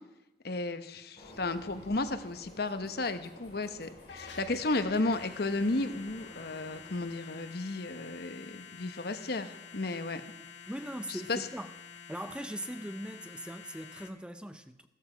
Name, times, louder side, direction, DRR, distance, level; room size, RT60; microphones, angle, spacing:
voice 1, 0.4-10.2 11.1-11.4, left 2 dB, 55° left, 1.0 m, -33 dB
Train, 1.2-7.9, left 1 dB, 30° left, 6.5 m, -54 dB
sound 1, 4.1-14.1, left 6 dB, 80° left, 1.7 m, -49 dB
voice 2, 10.7-11.7 12.1-14.9, right 1 dB, 5° right, 0.5 m, -40 dB
15.0 x 13.5 x 5.0 m
head